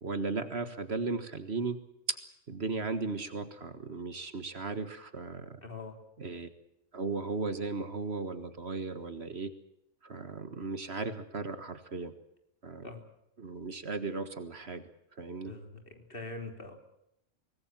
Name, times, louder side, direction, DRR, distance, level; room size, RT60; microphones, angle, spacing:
voice 1, 0.0-1.8 2.1-2.2 2.5-5.6 6.2-6.5 6.9-9.5 10.0-12.1 12.6-12.9 13.4-14.8 15.2-15.5, right 3 dB, 55° right, 10 dB, 1.8 m, -36 dB
voice 2, 5.6-5.9 12.8-13.0 15.5-16.7, left 3 dB, 45° left, 4 dB, 3.6 m, -43 dB
24.5 x 19.5 x 7.5 m, 0.81 s
omnidirectional pair, 1.3 m